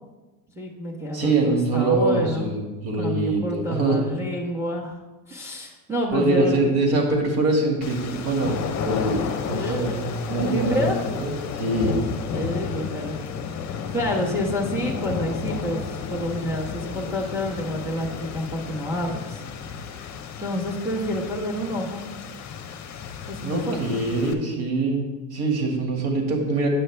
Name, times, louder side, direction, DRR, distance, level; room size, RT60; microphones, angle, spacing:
voice 1, 0.5-2.5 3.0-5.0 5.3-6.7 9.4-11.0 12.3-13.2 13.6-19.4 19.9-22.0 23.3-23.8, equal, 5° right, -1 dB, 1.2 m, -29 dB
voice 2, 1.1-4.0 6.1-12.1 23.4-26.7, right 2 dB, 50° right, 2 dB, 2.1 m, -24 dB
sound 1, 7.8-24.3, left 6 dB, 35° left, 0.8 m, -32 dB
8.9 x 6.4 x 3.3 m, 1.2 s
supercardioid pair, 100°, 49 cm